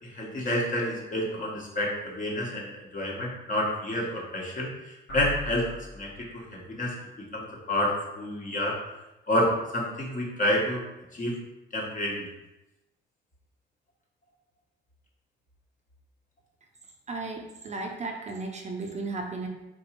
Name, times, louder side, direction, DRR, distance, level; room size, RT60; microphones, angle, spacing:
voice 1, 0.0-5.7 5.9-6.9 7.3-8.7 9.3-10.8 11.1-11.3 11.7-12.3, left 1 dB, 40° left, -2 dB, 1.3 m, -29 dB
sound 1, 5.1-6.7, equal, 80° left, 1.4 m, -39 dB
voice 2, 17.1-19.5, right 3 dB, 35° right, 2 dB, 0.6 m, -35 dB
3.8 x 2.5 x 4.4 m, 0.97 s
cardioid pair, 90°, 20 cm